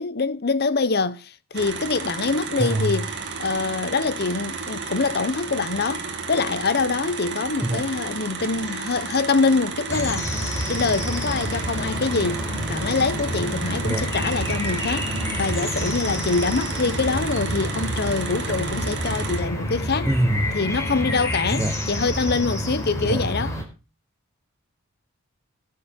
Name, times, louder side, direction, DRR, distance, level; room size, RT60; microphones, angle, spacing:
voice 1, 0.0-3.1 3.4-10.3 10.7-12.4 12.7-15.1 15.4-20.1 20.5-23.5, left 4 dB, 45° left, 0.8 m, -24 dB
sound 1, 1.5-19.4, right 4 dB, 55° right, 2.2 m, -33 dB
voice 2, 2.6-3.0 7.6-7.9 13.8-14.1 20.1-20.6 21.5-21.8 23.0-23.2, right 1 dB, 15° right, 0.8 m, -24 dB
sound 2, 9.9-23.6, equal, 15° left, 4.5 m, -28 dB
20.0 x 7.6 x 4.4 m
head